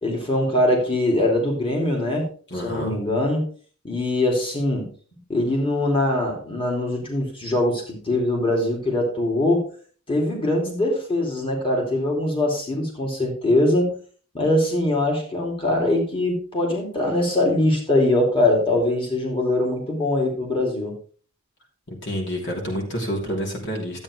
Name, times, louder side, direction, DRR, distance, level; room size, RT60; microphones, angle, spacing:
voice 1, 0.0-2.3 2.6-3.5 3.8-4.9 5.3-9.7 10.1-13.9 14.3-20.9, left 1 dB, 25° left, 0 dB, 2.9 m, -22 dB
voice 2, 2.5-3.0 21.9-24.0, equal, 60° left, 0 dB, 3.1 m, -28 dB
12.5 x 8.6 x 3.3 m, 0.41 s
head